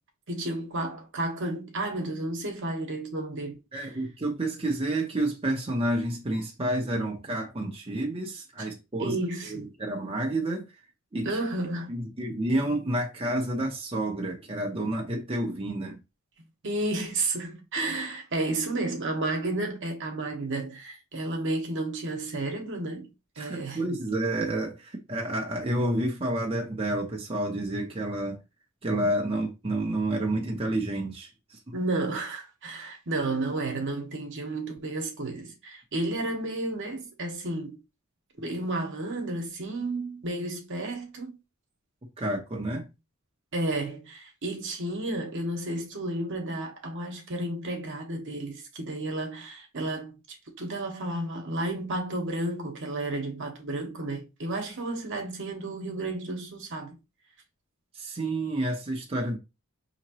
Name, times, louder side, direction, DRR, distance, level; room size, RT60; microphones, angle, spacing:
voice 1, 0.3-3.9 8.6-8.7 9.0-9.7 11.2-11.9 16.6-23.1 23.4-23.8 31.7-37.8 38.4-41.3 43.5-50.2 50.6-57.0, right 2 dB, 60° right, 1.1 m, -32 dB
voice 2, 3.7-9.1 9.5-10.7 11.1-11.4 11.9-16.0 23.4-28.4 28.8-31.7 42.2-42.9 57.9-59.4, right 1 dB, 25° right, 0.7 m, -29 dB
5.7 x 2.9 x 2.9 m
head